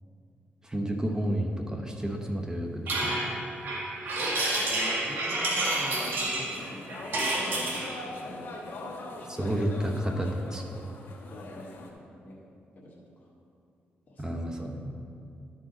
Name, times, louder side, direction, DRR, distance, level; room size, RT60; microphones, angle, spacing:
voice 1, 0.6-3.3 9.3-10.6 14.2-14.9, right 1 dB, 15° right, 2 dB, 1.0 m, -31 dB
sound 1, 2.9-8.0, right 2 dB, 65° right, 1.6 m, -29 dB
sound 2, 4.1-11.9, left 2 dB, 70° left, 1.2 m, -43 dB
voice 2, 4.1-8.6 11.3-12.4 12.7-13.0 14.1-14.6, left 1 dB, 40° left, -7 dB, 1.4 m, -44 dB
12.5 x 4.9 x 3.9 m, 2.5 s
cardioid pair, 85°, 4 cm